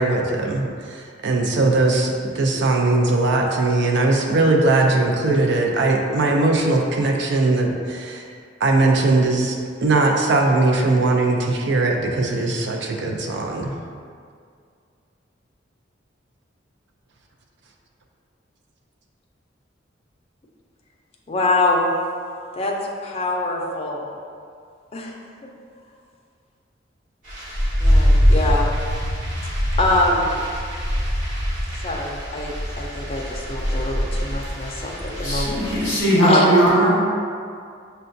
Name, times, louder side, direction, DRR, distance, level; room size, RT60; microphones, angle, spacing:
voice 1, 0.0-8.2 8.6-13.7, right 2 dB, 65° right, 1 dB, 0.5 m, -20 dB
voice 2, 21.3-21.9 22.6-22.7 23.0-24.1 24.9-25.1 25.4-25.5 27.8-28.7 29.8-30.4 31.8-35.6 36.2-36.5, left 2 dB, 30° left, -1 dB, 0.5 m, -24 dB
sound 1, 27.2-36.0, equal, 45° right, 1.4 m, -23 dB
voice 3, 35.2-36.9, right 1 dB, 15° right, -13 dB, 1.1 m, -18 dB
6.5 x 2.2 x 2.6 m, 2.2 s
head